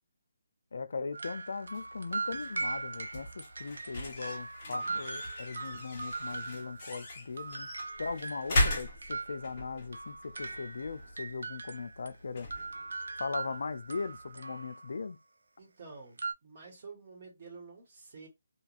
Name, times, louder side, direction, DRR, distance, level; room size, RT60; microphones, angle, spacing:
voice 1, 0.7-7.7 8.0-12.5 13.2-15.2, left 4 dB, 60° left, 0.4 m, -39 dB
sound 1, 1.1-7.1 7.4-12.1 12.5-15.0 16.2-16.3, right 3 dB, 75° right, 0.6 m, -40 dB
sound 2, 1.7-14.4, left 1 dB, 25° left, 1.3 m, -39 dB
voice 2, 4.6-5.2 15.6-18.3, right 4 dB, 35° right, 1.3 m, -50 dB
3.0 x 2.3 x 2.5 m
hypercardioid pair, 170°, 0 cm